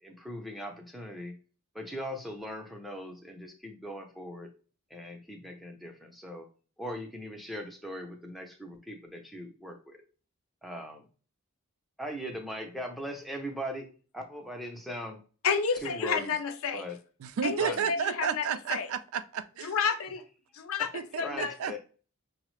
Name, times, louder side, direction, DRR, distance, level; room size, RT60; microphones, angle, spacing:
voice 1, 0.0-1.3 1.7-4.5 4.9-6.5 6.8-10.0 10.6-11.1 12.0-13.9 14.1-15.2 15.8-16.3 16.7-17.0 17.6-17.9 21.2-21.8, equal, ahead, 0.5 m, -39 dB
voice 2, 15.4-16.8 17.4-18.9 19.6-20.2 20.5-21.6, left 5 dB, 70° left, 0.5 m, -30 dB
voice 3, 17.2-19.7 20.9-21.8, right 7 dB, 70° right, 0.3 m, -32 dB
5.5 x 2.0 x 3.1 m
head